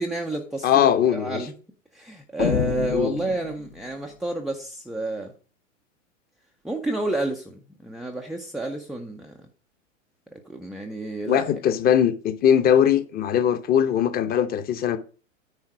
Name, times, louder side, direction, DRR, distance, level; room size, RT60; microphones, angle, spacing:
voice 1, 0.0-1.5 1.9-5.3 6.6-9.3 10.5-11.5, right 2 dB, ahead, 0.4 m, -30 dB
voice 2, 0.6-1.5 2.9-3.1 11.3-15.0, left 9 dB, 25° left, 0.8 m, -20 dB
sound 1, 2.4-4.0, left 10 dB, 50° left, 0.9 m, -28 dB
9.7 x 3.9 x 6.0 m
figure-of-eight pair, 100°, 40 cm